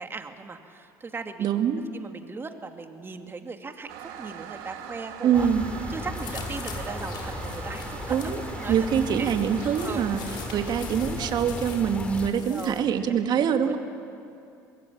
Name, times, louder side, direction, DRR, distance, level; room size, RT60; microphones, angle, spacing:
voice 1, 0.0-1.5 1.9-5.5 5.9-8.7 9.2-9.3 9.8-10.0 10.5-10.7 12.3-12.9 13.4-13.7, right 4 dB, 25° right, 6 dB, 2.5 m, -38 dB
voice 2, 1.4-1.8 5.2-5.7 8.1-8.4 8.7-10.2 10.5-13.8, right 8 dB, 50° right, 7 dB, 2.2 m, -24 dB
Toilet flush, 3.9-11.4, right 9 dB, 75° right, 2.4 m, -42 dB
sound 1, 5.3-12.3, left 2 dB, 15° left, 3.5 m, -36 dB
sound 2, 6.1-12.8, left 6 dB, 55° left, 4.9 m, -43 dB
25.0 x 21.5 x 8.7 m, 2.7 s
hypercardioid pair, 70°, 9 cm